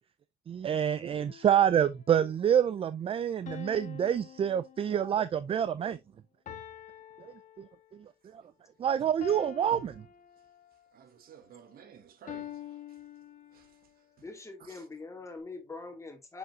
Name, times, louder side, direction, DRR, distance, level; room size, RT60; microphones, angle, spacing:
voice 1, 0.5-6.0 7.6-7.7 8.3-8.4 8.8-9.9, right 9 dB, 35° right, 0.4 m, -27 dB
sound 1, 1.3-2.1 3.5-5.3 6.5-8.1 9.2-10.9 12.3-13.9, left 9 dB, 50° left, 1.4 m, -47 dB
voice 2, 10.9-12.8 13.5-13.7 14.2-14.3 14.6-14.9, right 8 dB, 60° right, 1.3 m, -53 dB
voice 3, 14.2-16.4, left 3 dB, 15° left, 2.5 m, -43 dB
6.9 x 6.2 x 2.7 m
cardioid pair, 110°, 17 cm